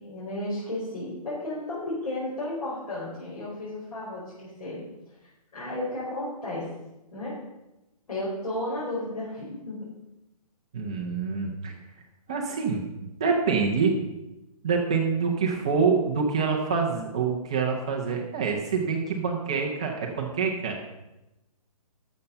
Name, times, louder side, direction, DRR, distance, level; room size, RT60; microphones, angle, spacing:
voice 1, 0.0-4.8 5.5-6.7 7.1-7.4 8.1-9.9, left 1 dB, 75° left, -8 dB, 4.8 m, -33 dB
voice 2, 10.7-11.7 12.3-12.8 13.2-14.0 14.6-20.8, right 5 dB, 10° right, -1 dB, 0.4 m, -26 dB
12.5 x 6.9 x 5.2 m, 0.97 s
hypercardioid pair, 175°, 20 cm